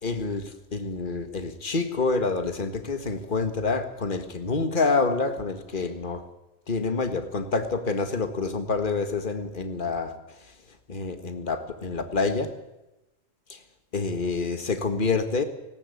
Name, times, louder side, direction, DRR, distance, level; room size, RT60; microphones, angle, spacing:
voice 1, 0.0-6.3 6.7-10.4 10.9-12.5 13.5-13.6 13.9-15.4, left 4 dB, 40° left, 8 dB, 1.8 m, -27 dB
19.0 x 18.0 x 8.5 m, 0.97 s
omnidirectional pair, 1.3 m